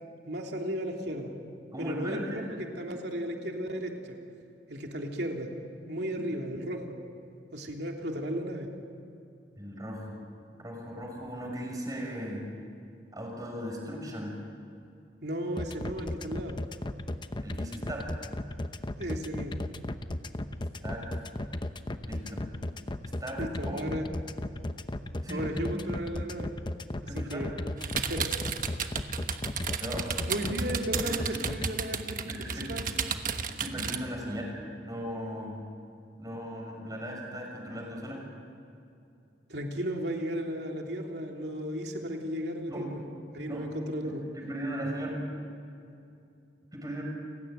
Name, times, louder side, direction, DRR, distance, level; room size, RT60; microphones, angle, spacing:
voice 1, 0.3-1.3 1.8-4.2 4.7-5.5 5.9-7.0 7.5-8.7 15.2-16.6 19.0-19.7 23.4-24.1 25.3-26.5 27.1-27.5 27.9-28.3 30.3-32.1 32.5-32.8 39.5-43.0 43.3-44.2, equal, 70° right, 1 dB, 3.1 m, -34 dB
voice 2, 1.7-2.4 9.6-10.2 10.6-12.4 13.1-14.4 17.4-18.1 20.8-21.1 22.1-22.4 23.2-23.8 25.2-25.5 27.1-27.5 29.8-30.1 31.3-31.5 32.3-32.7 33.5-35.6 36.2-38.2 42.7-42.9 43.5-43.7 44.0-45.2 46.7-47.0, equal, 20° right, 0 dB, 6.0 m, -37 dB
sound 1, 15.6-31.7, left 1 dB, 25° left, 0.8 m, -35 dB
sound 2, 27.8-34.0, right 6 dB, 50° right, 1.3 m, -33 dB
29.0 x 17.0 x 9.3 m, 2.6 s
head